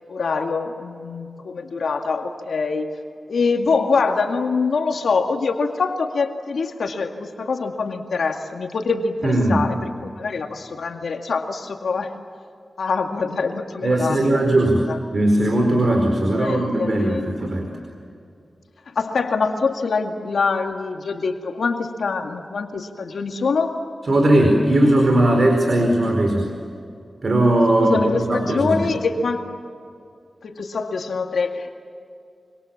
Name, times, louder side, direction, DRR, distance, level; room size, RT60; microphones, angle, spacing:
voice 1, 0.1-2.9 3.3-9.7 10.0-12.1 12.8-14.6 14.9-15.0 16.3-17.4 18.9-23.8 27.8-29.5 30.4-31.7, left 4 dB, 85° left, 4 dB, 2.1 m, -24 dB
voice 2, 9.2-9.7 13.8-17.7 24.1-26.5 27.2-28.0 28.3-28.8, right 1 dB, 50° right, 3 dB, 4.6 m, -18 dB
26.5 x 25.5 x 7.3 m, 2.4 s
wide cardioid pair, 90°, 0 cm